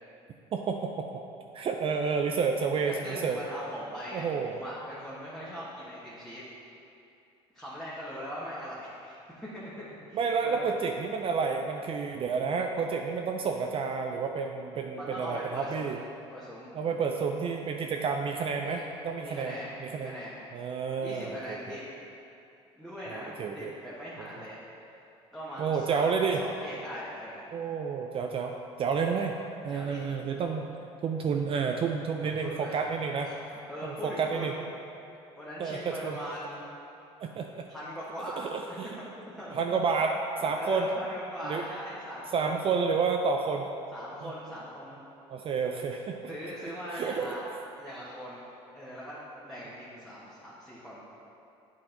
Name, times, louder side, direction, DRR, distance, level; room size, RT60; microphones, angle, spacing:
voice 1, 0.5-1.2 1.5-3.4 4.1-4.6 10.1-16.0 16.7-20.1 20.5-21.8 23.1-23.7 24.2-24.3 25.6-26.4 27.5-28.5 28.8-29.3 29.6-30.7 31.0-33.3 33.8-34.5 35.6-36.2 37.2-37.6 38.4-38.9 39.5-40.9 41.4-41.6 42.3-43.6 44.2-44.3 45.3-46.2 46.9-47.3, right 5 dB, 40° right, 3 dB, 0.4 m, -30 dB
voice 2, 2.8-6.4 7.5-10.7 14.9-16.0 16.3-16.7 18.6-18.8 19.2-20.4 21.0-21.8 22.7-24.9 25.3-26.0 26.4-27.5 29.1-29.2 29.7-30.1 32.2-32.7 33.2-34.6 35.3-36.7 37.7-38.5 38.8-39.0 39.4-39.7 40.6-42.6 43.9-45.0 46.3-47.4 47.8-48.4 48.7-51.0, equal, ahead, -9 dB, 1.3 m, -41 dB
7.7 x 4.2 x 3.9 m, 2.7 s
supercardioid pair, 80°, 14 cm